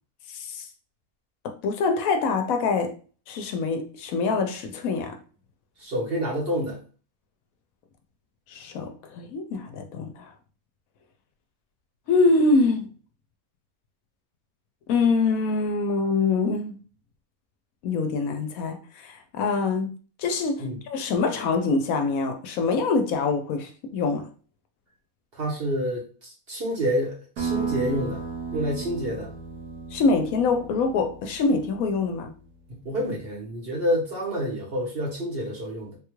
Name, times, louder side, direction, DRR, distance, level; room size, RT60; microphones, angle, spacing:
voice 1, 0.3-0.7 1.4-3.0 3.3-5.2 8.5-10.3 12.1-12.9 14.9-16.8 17.8-19.9 20.2-24.3 29.9-32.3, left 4 dB, 75° left, 1.0 m, -24 dB
voice 2, 5.8-6.8 20.6-20.8 25.4-28.2 28.5-29.3 32.7-36.0, equal, 45° right, 1.1 m, -28 dB
sound 1, 27.4-32.5, right 5 dB, 85° right, 1.4 m, -34 dB
3.5 x 2.3 x 3.0 m
omnidirectional pair, 1.5 m